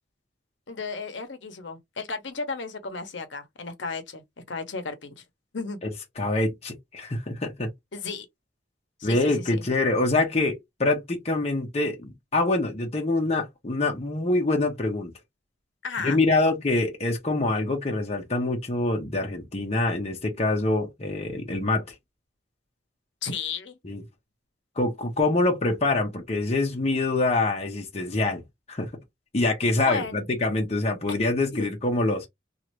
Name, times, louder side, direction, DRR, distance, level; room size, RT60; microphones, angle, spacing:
voice 1, 0.7-5.2 5.5-5.8 7.9-8.3 9.0-9.6 15.8-16.2 23.2-23.8 29.8-30.2 31.5-31.7, left 4 dB, 75° left, 0.9 m, -34 dB
voice 2, 6.2-7.7 9.0-15.1 16.0-21.9 23.8-24.0 24.8-28.4 28.7-28.9 29.3-32.3, left 2 dB, 35° left, 0.8 m, -25 dB
3.1 x 2.5 x 3.0 m
head